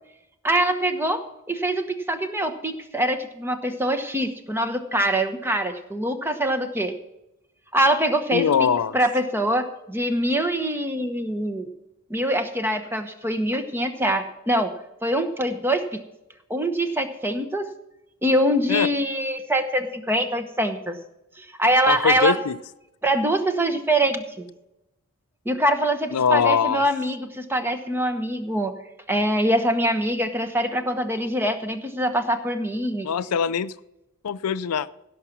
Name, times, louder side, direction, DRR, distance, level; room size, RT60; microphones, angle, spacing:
voice 1, 0.4-1.2 1.5-6.9 7.7-8.7 8.9-11.7 12.1-14.7 15.0-16.0 16.5-17.7 18.2-21.0 21.4-22.4 23.0-24.5 25.4-28.7 29.1-33.1, right 1 dB, 10° right, 8 dB, 1.0 m, -24 dB
voice 2, 8.3-9.0 18.7-18.9 21.9-22.6 26.1-26.8 33.0-33.7 34.2-34.9, left 7 dB, 80° left, 15 dB, 0.5 m, -22 dB
16.5 x 6.0 x 5.9 m, 0.90 s
head